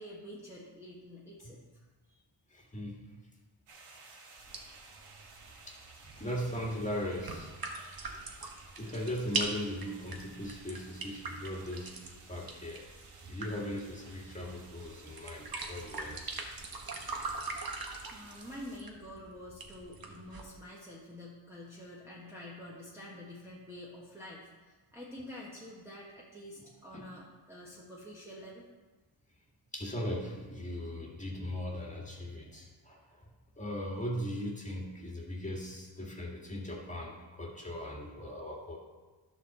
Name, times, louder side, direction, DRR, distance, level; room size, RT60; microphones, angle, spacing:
voice 1, 0.0-2.2 18.1-28.6, left 1 dB, 5° right, -6 dB, 1.4 m, -48 dB
voice 2, 2.5-3.1 5.7-5.8 6.0-7.5 7.8-7.9 8.8-11.9 12.3-12.8 13.3-16.3 26.9-27.1 29.7-33.3 33.6-38.8, equal, 15° left, -3 dB, 2.1 m, -38 dB
sound 1, 3.7-18.8, right 3 dB, 80° right, 1.8 m, -56 dB
sound 2, 4.4-20.4, right 3 dB, 45° right, 1.4 m, -42 dB
10.5 x 4.5 x 6.7 m, 1.3 s
cardioid pair, 95°, 50 cm